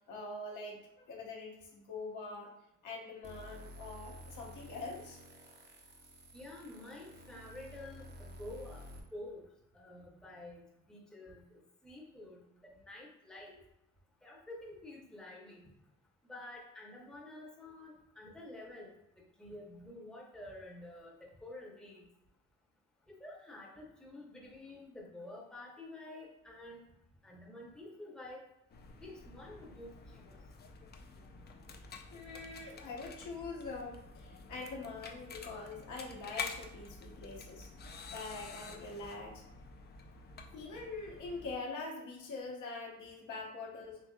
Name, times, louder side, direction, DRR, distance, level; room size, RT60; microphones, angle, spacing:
voice 1, 0.1-2.5 2.8-5.2 32.1-37.7 38.1-39.4 40.5-44.0, left 3 dB, 75° left, -2 dB, 1.0 m, -44 dB
sound 1, 3.2-9.0, equal, 35° right, 0.6 m, -52 dB
voice 2, 6.3-8.8 9.1-9.4 9.7-11.4 11.8-13.6 14.2-15.7 16.2-22.1 23.1-26.8 27.2-28.4 29.0-30.4, left 1 dB, ahead, -2 dB, 0.7 m, -49 dB
sound 2, 28.7-41.5, left 5 dB, 35° left, 0.4 m, -49 dB
3.8 x 2.7 x 2.2 m, 0.84 s
cardioid pair, 90°, 30 cm